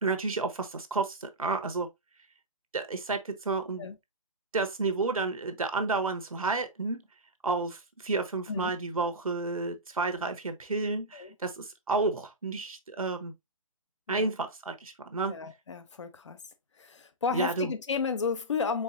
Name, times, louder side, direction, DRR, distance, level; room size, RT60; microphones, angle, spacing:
voice 1, 0.0-1.9 2.7-3.9 4.5-7.0 7.4-13.3 14.1-15.3 17.3-17.7, right 3 dB, 80° right, 1.1 m, -31 dB
voice 2, 15.3-16.4 16.8-18.8, left 5 dB, 60° left, 0.8 m, -33 dB
4.6 x 3.8 x 2.5 m
figure-of-eight pair, 150°, 18 cm